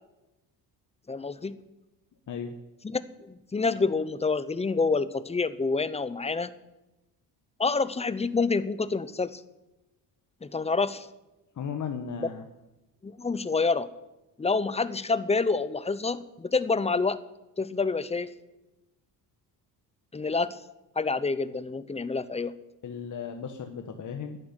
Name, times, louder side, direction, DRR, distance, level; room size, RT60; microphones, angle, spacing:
voice 1, 1.1-1.6 2.8-6.5 7.6-9.4 10.4-11.1 13.0-13.9 14.4-17.2 17.6-18.3 20.1-20.6 21.0-22.5, left 4 dB, 15° left, 15 dB, 0.9 m, -27 dB
voice 2, 2.3-2.6 11.5-12.5 22.8-24.4, left 6 dB, 45° left, 6 dB, 1.4 m, -35 dB
11.5 x 11.0 x 9.9 m, 0.99 s
cardioid pair, 105°, 40 cm